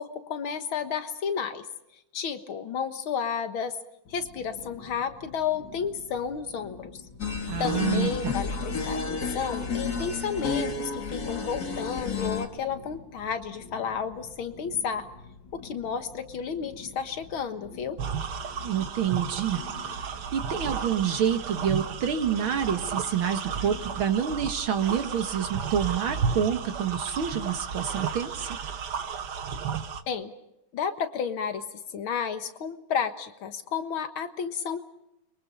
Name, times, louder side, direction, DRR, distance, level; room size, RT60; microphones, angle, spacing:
voice 1, 0.0-1.7 2.1-3.7 4.1-7.0 7.6-15.1 15.5-18.0 30.1-30.3 30.7-31.6 31.9-34.8, left 7 dB, 85° left, 8 dB, 2.3 m, -32 dB
sound 1, 4.0-24.0, left 4 dB, 70° left, 2.8 m, -48 dB
sound 2, 7.2-12.5, left 4 dB, 50° left, 2.5 m, -31 dB
voice 2, 7.5-8.4 18.6-19.6 20.0-28.5, right 8 dB, 85° right, 7 dB, 2.4 m, -28 dB
sound 3, 18.0-30.0, right 6 dB, 60° right, 1.6 m, -33 dB
30.0 x 23.0 x 5.4 m, 0.84 s
omnidirectional pair, 2.2 m